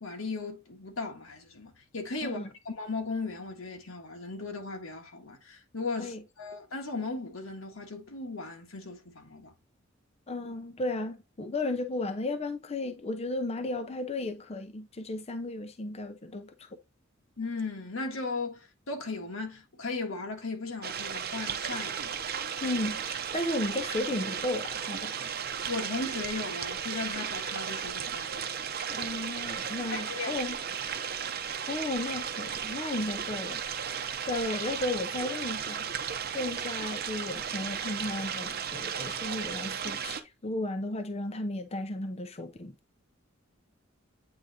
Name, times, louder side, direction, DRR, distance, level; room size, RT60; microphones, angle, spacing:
voice 1, 0.0-9.5 17.4-22.2 25.7-28.5 29.9-30.3, left 3 dB, 85° left, 1.5 m, -37 dB
voice 2, 10.3-16.7 22.6-25.1 28.9-30.6 31.7-35.8 36.3-42.7, left 2 dB, 30° left, 0.6 m, -34 dB
sound 1, 20.8-40.2, right 7 dB, 50° right, 0.8 m, -35 dB
8.6 x 3.9 x 2.8 m
head